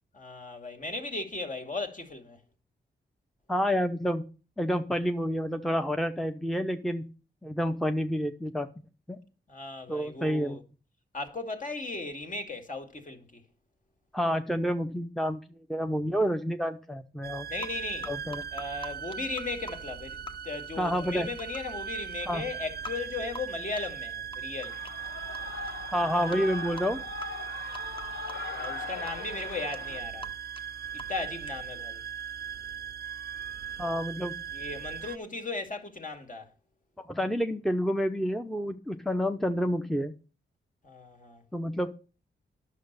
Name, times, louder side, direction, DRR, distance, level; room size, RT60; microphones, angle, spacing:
voice 1, 0.1-2.4 9.5-10.6 11.1-13.4 17.5-18.1 18.5-24.8 28.5-30.3 30.9-32.0 34.5-36.5 40.8-41.4, left 3 dB, 40° left, 2.4 m, -37 dB
voice 2, 3.5-4.3 4.6-7.1 7.4-8.7 9.1-9.2 9.9-10.6 14.1-15.4 15.7-17.5 18.1-18.4 20.8-21.3 22.3-22.5 25.9-27.0 33.8-34.4 37.0-40.1 41.5-41.9, equal, ahead, 0.9 m, -29 dB
sound 1, 17.2-35.2, right 8 dB, 55° right, 0.6 m, -39 dB
sound 2, 17.6-17.7 18.0-19.7 20.3-20.4 21.0-21.7 22.1-22.2 22.8-22.9 23.4-23.5 23.8-23.9 24.3-25.1 25.3-25.9 26.3-26.4 26.8-26.9 27.2-27.3 27.7-28.4 28.6-28.7 29.1-29.2 29.4-29.5 29.7-29.8 30.0-30.3 30.6-30.7 31.0-31.2 31.5-31.6, left 1 dB, 25° left, 1.5 m, -41 dB
Shout / Cheering, 24.6-30.0, left 5 dB, 75° left, 1.0 m, -40 dB
10.5 x 6.4 x 6.7 m
cardioid pair, 60°, 20 cm